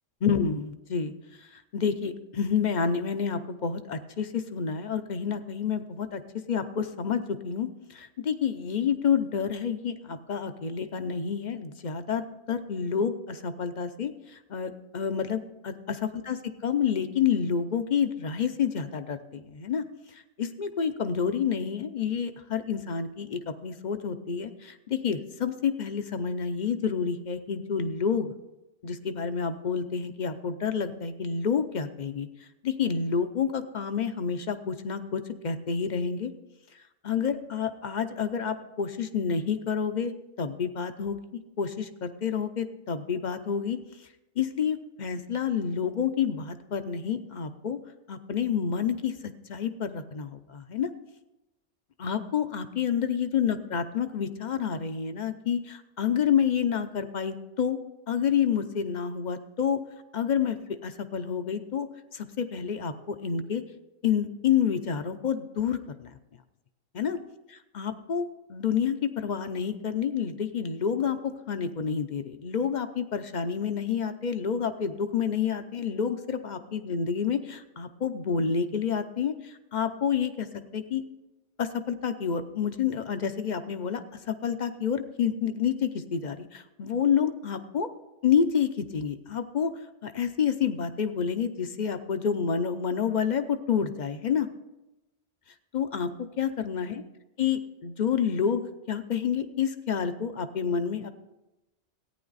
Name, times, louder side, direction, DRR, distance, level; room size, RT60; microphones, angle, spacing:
voice 1, 0.2-1.1 1.5-6.2 6.5-12.2 12.5-19.8 20.1-28.3 28.8-32.3 32.6-36.3 37.0-40.1 40.4-41.2 41.6-43.8 44.4-47.8 48.1-49.1 49.5-50.9 52.0-57.8 58.1-59.8 60.1-60.6 60.8-61.9 62.1-63.6 64.0-66.1 66.9-67.2 67.7-80.5 80.7-81.0 81.6-87.9 88.2-89.7 90.0-94.5 95.7-96.1 96.4-97.0 97.4-101.1, left 7 dB, 50° left, 10 dB, 0.6 m, -29 dB
14.5 x 9.4 x 4.0 m, 0.96 s
omnidirectional pair, 1.2 m